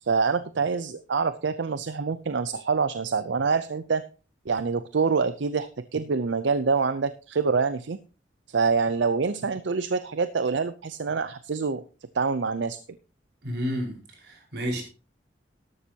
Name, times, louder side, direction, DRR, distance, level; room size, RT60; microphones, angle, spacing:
voice 1, 0.0-4.0 4.5-8.0 8.5-11.8 12.1-12.8, right 5 dB, 80° right, 0.6 m, -26 dB
voice 2, 13.4-14.8, equal, 60° right, 4.8 m, -31 dB
13.0 x 11.5 x 2.8 m
head